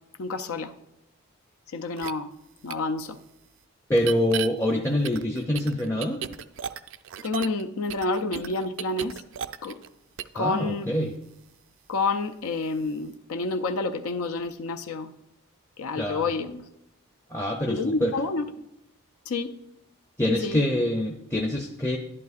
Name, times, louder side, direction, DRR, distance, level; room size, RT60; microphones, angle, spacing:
voice 1, 0.2-0.7 1.7-2.3 2.6-3.2 7.2-9.2 9.6-9.8 10.3-11.0 11.9-15.1 15.8-16.7 17.7-18.5 19.3-19.5 20.3-20.6, left 3 dB, 75° left, 6 dB, 0.5 m, -29 dB
sound 1, 2.0-2.1 2.7-2.8 4.0-4.5 5.0-7.6 7.9-9.9 10.2-10.4, right 9 dB, 60° right, 0.4 m, -35 dB
voice 2, 3.9-6.2 10.3-11.1 16.0-16.2 17.3-18.1 20.2-22.0, left 1 dB, 10° left, 1 dB, 0.5 m, -25 dB
11.5 x 11.0 x 2.5 m, 0.82 s
head